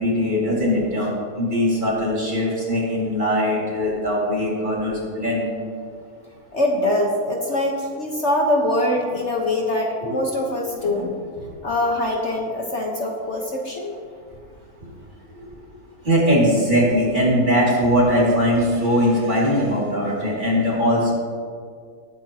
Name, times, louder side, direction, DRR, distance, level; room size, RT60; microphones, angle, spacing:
voice 1, 0.0-5.5 10.0-10.2 10.8-11.1 11.4-11.5 14.8-14.9 16.0-21.1, equal, 30° right, -5 dB, 2.8 m, -21 dB
voice 2, 6.5-11.1 11.6-13.9, left 1 dB, 50° left, 0 dB, 1.4 m, -23 dB
20.5 x 8.9 x 2.9 m, 2.1 s
omnidirectional pair, 1.6 m